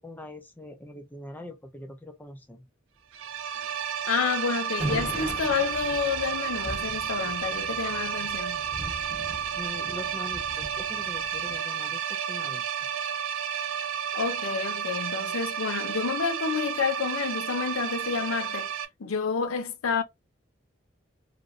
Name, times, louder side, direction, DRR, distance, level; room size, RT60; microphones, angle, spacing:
voice 1, 0.0-2.6 9.6-13.0, left 1 dB, 10° left, 0.4 m, -42 dB
sound 1, 3.1-18.9, right 8 dB, 75° right, 0.4 m, -32 dB
voice 2, 4.1-8.6 14.1-18.7 19.0-20.0, left 5 dB, 85° left, 0.5 m, -29 dB
sound 2, 4.8-11.6, right 1 dB, 25° right, 0.8 m, -39 dB
3.2 x 2.5 x 2.4 m
head